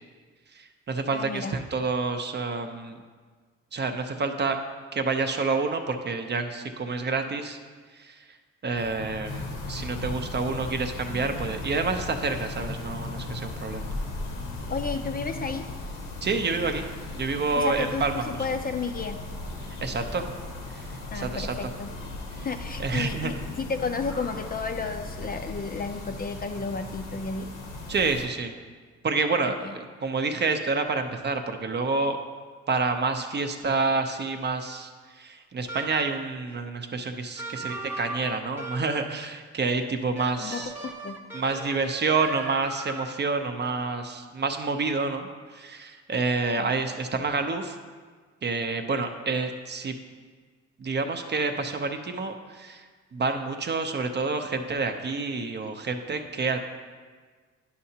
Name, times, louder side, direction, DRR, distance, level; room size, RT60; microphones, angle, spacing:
voice 1, 0.5-3.0 3.7-4.6 4.9-7.6 8.0-8.2 8.6-13.9 16.2-16.8 17.1-18.1 19.8-20.3 20.7-21.7 22.3-22.5 22.8-23.4 27.9-28.5 29.0-32.2 32.7-40.7 41.3-47.8 48.4-49.9 50.8-52.8 53.1-56.6, right 4 dB, 35° right, 6 dB, 0.6 m, -28 dB
voice 2, 1.1-1.5 14.7-15.7 17.6-19.2 21.1-21.9 22.4-27.5 29.6-29.7 40.4-41.2 46.6-46.7, left 4 dB, 30° left, 6 dB, 0.5 m, -32 dB
sound 1, 8.8-15.8, left 4 dB, 55° left, 0.9 m, -39 dB
sound 2, 9.2-28.3, left 2 dB, 85° left, 1.2 m, -38 dB
sound 3, 35.7-36.4 37.4-39.2 40.2-43.4, right 3 dB, 5° right, 0.8 m, -38 dB
10.0 x 5.6 x 2.8 m, 1.5 s
cardioid pair, 90°, 30 cm